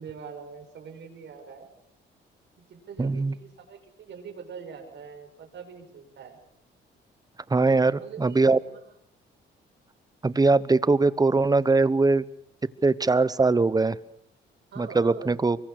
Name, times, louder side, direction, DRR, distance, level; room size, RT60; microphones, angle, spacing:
voice 1, 0.0-1.7 2.7-6.4 7.7-8.8 14.7-15.4, right 6 dB, 65° right, 4 dB, 6.2 m, -43 dB
voice 2, 3.0-3.3 7.5-7.9 8.2-8.6 10.2-12.2 12.8-14.0 14.8-15.6, right 3 dB, 20° right, 17 dB, 1.0 m, -21 dB
24.5 x 22.0 x 6.7 m, 0.69 s
cardioid pair, 90°, 20 cm